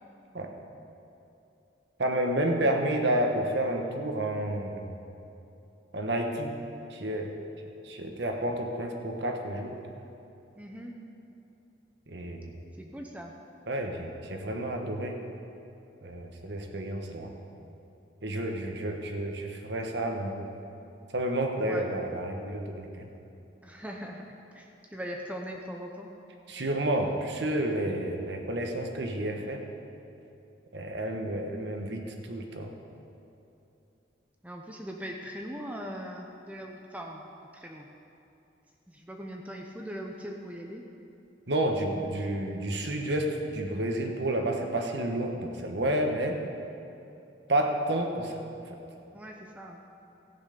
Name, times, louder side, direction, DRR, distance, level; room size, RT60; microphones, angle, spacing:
voice 1, 2.0-4.9 5.9-6.5 6.9-7.3 7.9-9.7 12.1-12.5 13.7-15.2 16.0-17.3 18.2-20.5 21.1-23.1 26.5-29.6 30.7-32.7 41.5-46.4 47.5-48.3, right 1 dB, 70° right, 3 dB, 1.3 m, -30 dB
voice 2, 10.6-11.0 12.8-13.3 21.6-21.9 23.6-26.1 34.4-37.2 37.5-37.9 38.9-40.9 49.1-49.8, equal, 10° right, 1 dB, 0.7 m, -40 dB
14.5 x 9.1 x 5.2 m, 2.8 s
head